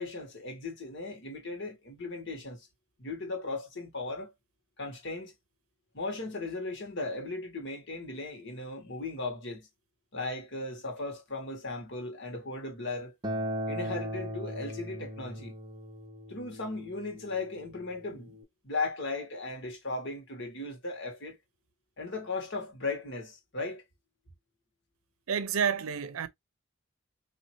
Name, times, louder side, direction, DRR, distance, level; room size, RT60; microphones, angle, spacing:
voice 1, 0.0-2.7 3.0-4.3 4.8-5.3 5.9-9.7 10.1-13.1 13.7-15.5 16.3-18.4 18.6-21.4 22.0-23.8, left 3 dB, 60° left, 1.5 m, -37 dB
Acoustic guitar, 13.2-18.4, equal, 20° right, 0.7 m, -38 dB
voice 2, 25.3-26.3, right 7 dB, 85° right, 0.6 m, -29 dB
4.1 x 2.9 x 3.0 m
head